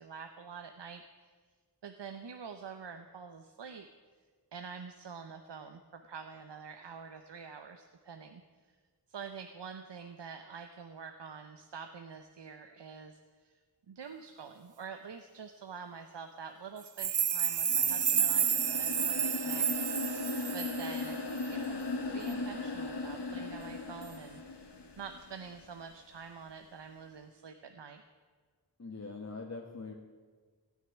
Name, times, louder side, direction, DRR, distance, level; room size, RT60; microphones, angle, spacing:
voice 1, 0.0-1.3 1.8-3.9 4.5-8.4 9.1-13.6 13.9-19.7 20.5-21.2 21.5-24.7 25.0-28.0, right 6 dB, 85° right, 7 dB, 0.8 m, -46 dB
sound 1, 16.9-21.1 21.4-21.5, right 8 dB, 50° right, 0.5 m, -30 dB
sound 2, 17.7-25.7, left 3 dB, 80° left, 1.7 m, -38 dB
voice 2, 28.8-29.9, left 3 dB, 40° left, 1 dB, 1.3 m, -42 dB
15.5 x 6.6 x 10.0 m, 1.5 s
wide cardioid pair, 70°, 41 cm